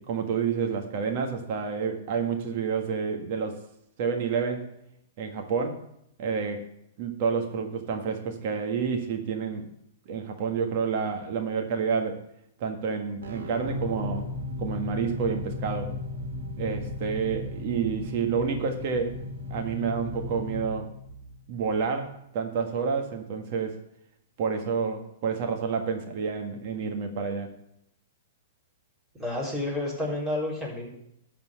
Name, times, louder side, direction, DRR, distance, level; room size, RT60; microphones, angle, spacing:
voice 1, 0.0-3.6 4.0-4.7 5.2-5.8 6.2-6.7 7.0-9.7 10.1-12.2 12.6-14.2 14.6-16.0 16.6-19.2 19.5-20.9 21.5-23.8 24.4-27.5, right 6 dB, 50° right, 4 dB, 1.6 m, -29 dB
sound 1, 13.2-21.9, left 2 dB, 70° right, 2.6 m, -36 dB
voice 2, 29.2-30.9, left 1 dB, 5° right, -6 dB, 4.1 m, -30 dB
12.5 x 4.4 x 7.9 m, 0.77 s
hypercardioid pair, 125°, 0 cm